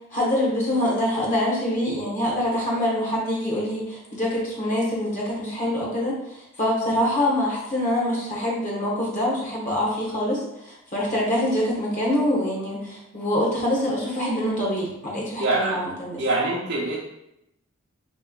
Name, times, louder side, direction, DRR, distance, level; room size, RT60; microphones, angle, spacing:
voice 1, 0.1-16.2, left 1 dB, 35° left, -4 dB, 1.0 m, -25 dB
voice 2, 15.4-15.8 16.2-17.0, right 2 dB, 50° right, -5 dB, 0.6 m, -24 dB
3.1 x 3.0 x 3.7 m, 0.83 s
head